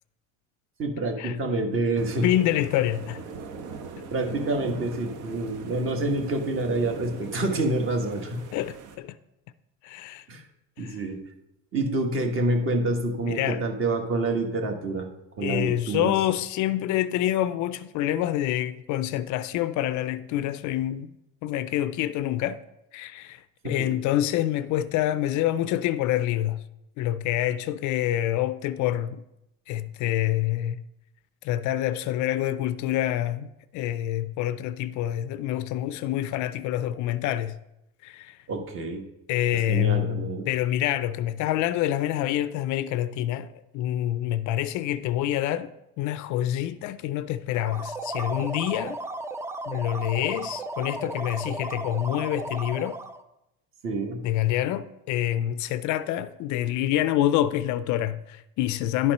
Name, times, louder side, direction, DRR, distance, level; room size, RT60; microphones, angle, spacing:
voice 1, 0.8-2.3 4.1-8.4 10.3-10.4 10.8-11.2 11.7-15.1 15.4-16.1 23.6-24.0 38.5-39.0 39.7-40.5 53.8-54.2, right 2 dB, 35° right, 1.5 m, -27 dB
sound 1, 2.0-9.0, right 5 dB, 60° right, 1.1 m, -40 dB
voice 2, 2.2-3.2 8.5-9.2 9.8-10.2 10.8-11.0 13.2-13.6 15.4-21.1 21.4-22.6 22.9-26.6 27.0-29.2 29.7-30.8 31.4-37.6 38.0-38.4 39.3-45.7 46.0-49.0 49.7-53.0 54.2-59.1, left 13 dB, 55° left, 0.4 m, -27 dB
sound 2, 47.5-53.2, right 2 dB, 10° right, 0.3 m, -35 dB
11.0 x 4.3 x 5.4 m
cardioid pair, 120°, 35 cm